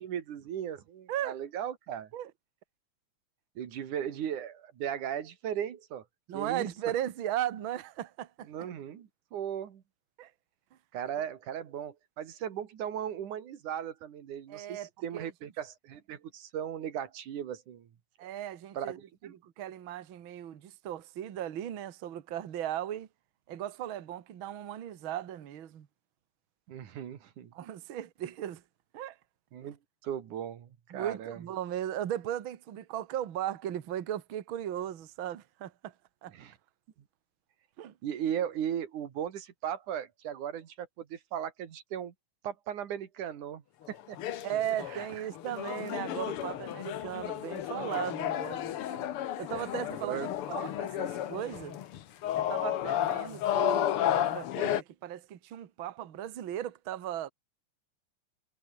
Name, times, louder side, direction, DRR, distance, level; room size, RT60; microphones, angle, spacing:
voice 1, 0.0-2.1 3.6-6.0 6.3-6.7 8.5-9.8 10.9-17.9 18.2-18.3 18.8-19.4 26.7-27.5 29.5-29.8 30.0-31.4 36.3-36.6 38.0-42.1 42.4-43.6 43.9-44.2 44.9-45.2 48.9-49.1 49.5-49.6 49.9-50.3, right 9 dB, 90° right, 3.5 m, -37 dB
voice 2, 6.3-8.5 10.2-10.3 14.5-15.3 18.2-19.0 19.4-23.1 23.5-25.9 27.5-28.6 28.9-29.2 30.9-35.9 36.2-36.3 37.8-37.9 44.4-48.7 49.4-51.8 52.4-57.3, right 11 dB, 50° right, 1.9 m, -37 dB
sound 1, 43.9-54.8, left 11 dB, 60° left, 1.6 m, -32 dB
omnidirectional pair, 3.4 m